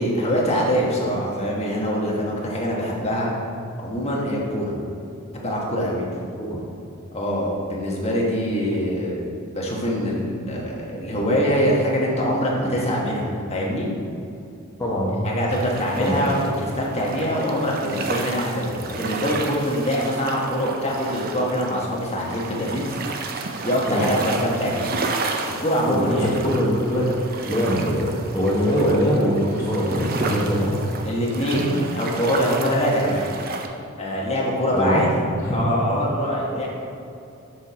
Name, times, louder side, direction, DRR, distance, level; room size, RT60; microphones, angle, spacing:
voice 1, 0.0-3.3 3.8-4.8 5.3-6.0 7.1-9.2 9.5-13.9 15.2-22.9 23.6-24.9 25.6-26.3 31.0-33.3 34.0-35.2 35.5-36.7, equal, 30° left, -3 dB, 1.4 m, -24 dB
voice 2, 14.8-15.2 16.0-16.2 23.9-24.1 25.9-27.1 27.5-30.8 34.7-35.0 35.3-35.6 36.5-36.6, equal, 15° left, -8 dB, 0.9 m, -22 dB
sound 1, 15.5-33.7, right 3 dB, 45° right, 0.6 m, -32 dB
6.2 x 4.5 x 5.7 m, 2.6 s
head